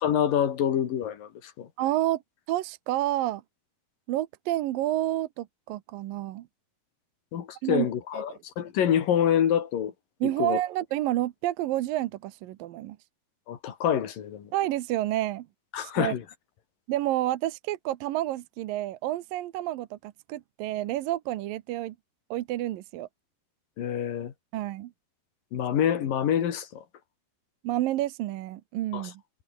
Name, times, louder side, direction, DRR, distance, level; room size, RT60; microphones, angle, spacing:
voice 1, 0.0-1.7 7.3-9.9 10.2-10.6 13.5-14.5 15.7-16.2 23.8-24.3 25.5-26.8 28.9-29.1, left 9 dB, 70° left, 3.9 m, -26 dB
voice 2, 1.8-2.2 2.5-3.4 4.1-6.5 7.6-7.9 8.1-8.2 10.2-13.0 14.5-15.5 16.0-16.1 16.9-22.0 22.3-23.1 24.5-24.9 27.6-29.1, right 15 dB, 75° right, 2.6 m, -29 dB
omnidirectional pair, 4.1 m